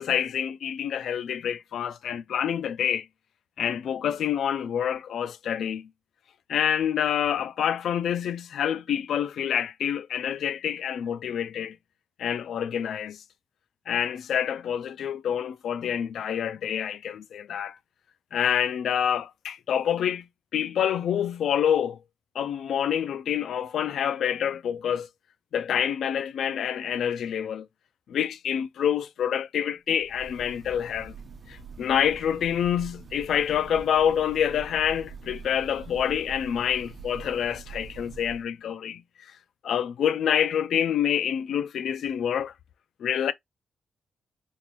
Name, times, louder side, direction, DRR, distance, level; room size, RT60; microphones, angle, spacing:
voice 1, 0.0-3.1 3.6-5.8 6.5-11.8 12.2-13.2 13.9-17.8 18.3-20.3 20.5-22.0 22.4-25.1 25.5-27.7 28.1-31.1 31.5-39.0 39.6-42.5 43.0-43.3, left 9 dB, 75° left, 0.3 m, -27 dB
Breathing / Bird, 30.0-38.5, right 5 dB, 40° right, 0.7 m, -44 dB
3.4 x 2.5 x 3.0 m
cardioid pair, 130°, 0 cm